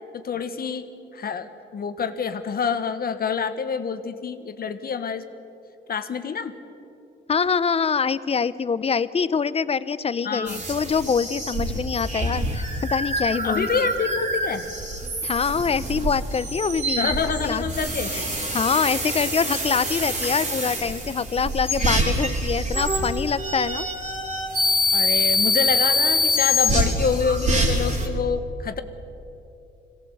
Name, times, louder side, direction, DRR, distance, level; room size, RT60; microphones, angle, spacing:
voice 1, 0.1-0.8 1.1-5.2 5.9-6.5 10.2-10.6 13.4-14.7 17.0-18.1 24.9-28.8, left 6 dB, 50° left, 9 dB, 1.4 m, -27 dB
voice 2, 7.3-13.7 15.2-17.1 17.4-17.6 18.1-18.2 18.5-23.9, left 6 dB, 30° left, 16 dB, 0.7 m, -24 dB
sound 1, 10.5-28.1, left 1 dB, 40° right, 4.0 m, -25 dB
22.0 x 17.5 x 8.0 m, 2.8 s
cardioid pair, 90°, 20 cm